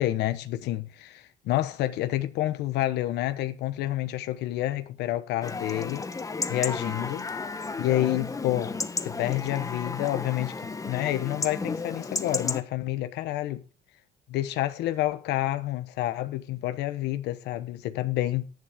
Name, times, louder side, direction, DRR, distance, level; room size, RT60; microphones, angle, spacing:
voice 1, 0.0-6.1 6.5-7.3 7.8-8.8 9.0-10.6 10.8-13.6 14.3-18.5, left 14 dB, 85° left, 1.1 m, -29 dB
Chatter / Livestock farm animals working animals / Chirp tweet, 5.4-12.6, left 4 dB, 20° left, 1.1 m, -33 dB
11.5 x 10.5 x 3.6 m
cardioid pair, 110°, 17 cm